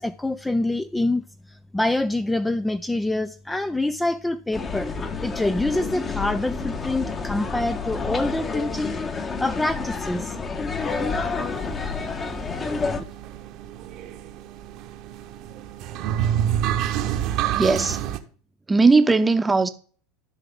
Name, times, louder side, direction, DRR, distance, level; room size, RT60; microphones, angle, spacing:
voice 1, 0.0-4.9 5.2-10.4, left 2 dB, 10° left, 0.4 m, -26 dB
sound 1, 4.5-13.0, left 4 dB, 25° left, 1.2 m, -29 dB
sound 2, 10.8-18.2, right 10 dB, 50° right, 0.9 m, -29 dB
voice 2, 17.6-18.0 18.7-19.7, right 3 dB, 15° right, 0.9 m, -18 dB
13.0 x 5.8 x 3.8 m
hypercardioid pair, 85°, 0 cm